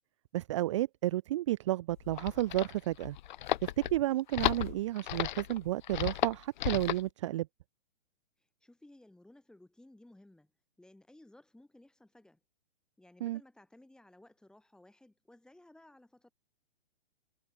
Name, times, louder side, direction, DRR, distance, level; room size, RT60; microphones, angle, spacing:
voice 1, 0.3-3.2 3.6-7.5 13.2-13.4, right 15 dB, 30° right, 0.4 m, -32 dB
sound 1, 1.9-7.1, left 13 dB, 50° left, 1.3 m, -34 dB
voice 2, 8.6-10.5 10.8-12.4 13.0-16.3, left 1 dB, ahead, 7.8 m, -58 dB
hypercardioid pair, 150°, 31 cm